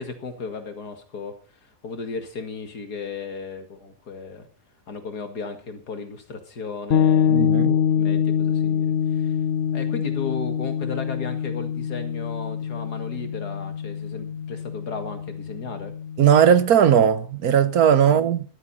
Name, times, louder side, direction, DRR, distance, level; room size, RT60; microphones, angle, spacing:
voice 1, 0.0-1.3 1.6-4.5 4.9-9.3 9.7-15.9 18.0-18.2, left 4 dB, 80° left, 2.7 m, -35 dB
sound 1, 6.9-16.6, left 8 dB, 45° left, 0.9 m, -25 dB
voice 2, 7.3-7.7 16.2-18.4, right 8 dB, 70° right, 1.5 m, -17 dB
13.5 x 13.0 x 4.2 m
omnidirectional pair, 1.7 m